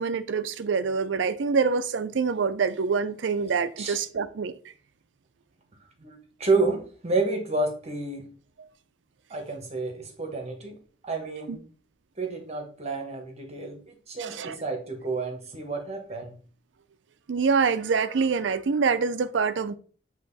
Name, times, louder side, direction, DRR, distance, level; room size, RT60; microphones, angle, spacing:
voice 1, 0.0-4.5 11.5-11.6 14.2-14.6 17.3-19.8, right 5 dB, 90° right, 0.5 m, -25 dB
voice 2, 6.0-8.2 9.3-10.7 11.0-11.6 12.2-16.4, right 3 dB, 35° right, 1.2 m, -30 dB
7.8 x 3.0 x 4.0 m
head